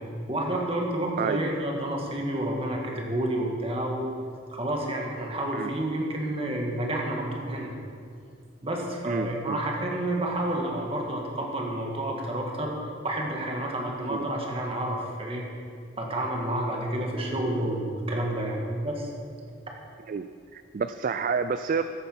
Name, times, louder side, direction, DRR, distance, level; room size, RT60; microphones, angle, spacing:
voice 1, 0.3-4.1 4.5-7.7 8.6-12.8 13.0-15.5 16.0-19.1, right 1 dB, 30° right, -1 dB, 1.8 m, -29 dB
voice 2, 1.2-1.5 5.5-5.7 9.0-9.6 14.1-14.3 20.1-20.2 20.5-21.8, right 5 dB, 45° right, 10 dB, 0.4 m, -29 dB
14.0 x 8.1 x 5.6 m, 2.3 s
head